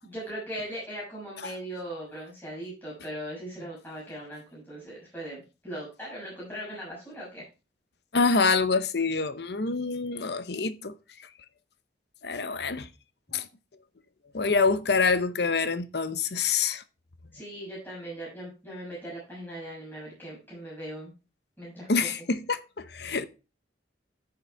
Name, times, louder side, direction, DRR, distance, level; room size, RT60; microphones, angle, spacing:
voice 1, 0.0-7.4 17.3-21.1 21.6-21.9, right 1 dB, 10° left, 6.5 m, -39 dB
voice 2, 8.1-10.9 12.2-12.9 13.3-13.5 14.3-16.8 21.9-23.3, left 4 dB, 60° left, 0.8 m, -26 dB
12.0 x 6.8 x 3.4 m
head